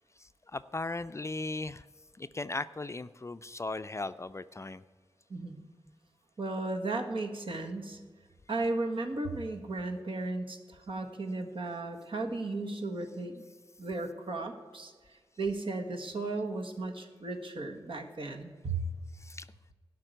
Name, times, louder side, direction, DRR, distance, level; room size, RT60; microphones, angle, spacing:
voice 1, 0.2-1.9 2.2-4.8 19.1-19.5, left 2 dB, 30° left, 12 dB, 0.4 m, -37 dB
voice 2, 5.3-5.6 6.4-8.0 8.5-13.4 13.8-14.9 15.4-18.8, right 3 dB, 65° right, 3 dB, 1.5 m, -35 dB
12.0 x 5.8 x 9.0 m, 1.5 s
wide cardioid pair, 70°, 10 cm